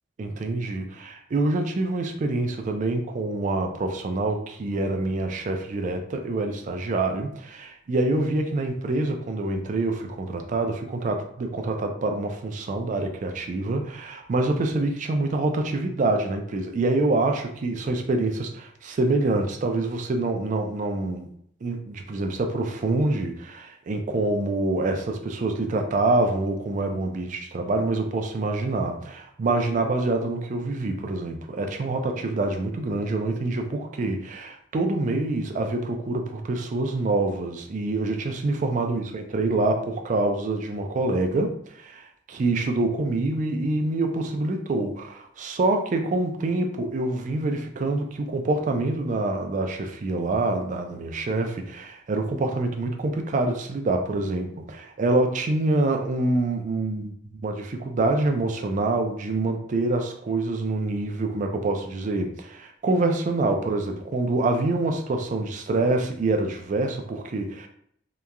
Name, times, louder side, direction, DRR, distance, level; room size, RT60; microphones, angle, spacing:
voice 1, 0.2-21.3 21.6-67.7, right 2 dB, 40° right, 5 dB, 0.3 m, -26 dB
2.9 x 2.3 x 2.2 m, 0.69 s
head